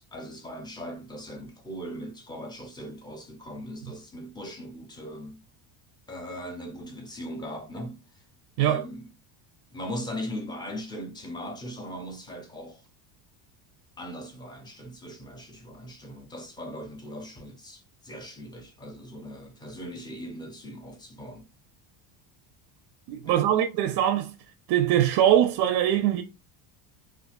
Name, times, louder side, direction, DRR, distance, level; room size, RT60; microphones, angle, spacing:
voice 1, 0.0-5.4 6.1-8.0 8.6-9.1 9.7-12.8 14.0-21.5 23.3-23.4, equal, 10° left, 0.5 m, -39 dB
voice 2, 23.1-24.3 24.7-26.2, right 11 dB, 55° right, 0.5 m, -22 dB
3.7 x 2.5 x 2.5 m
cardioid pair, 150°, 48 cm